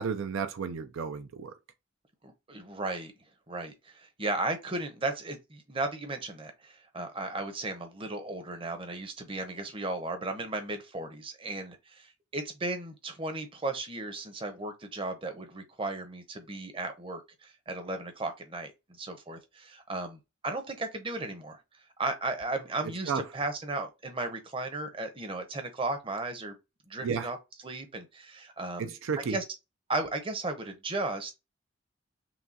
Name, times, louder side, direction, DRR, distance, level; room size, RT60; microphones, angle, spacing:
voice 1, 0.0-1.6 22.8-23.3 27.0-27.3 28.8-29.4, right 6 dB, 70° right, 0.4 m, -33 dB
voice 2, 2.2-3.1 3.5-18.7 19.0-21.6 22.0-26.6 26.9-27.4 27.6-28.9 29.3-29.4 29.9-31.3, right 2 dB, 25° right, 0.7 m, -35 dB
5.8 x 2.3 x 2.7 m
head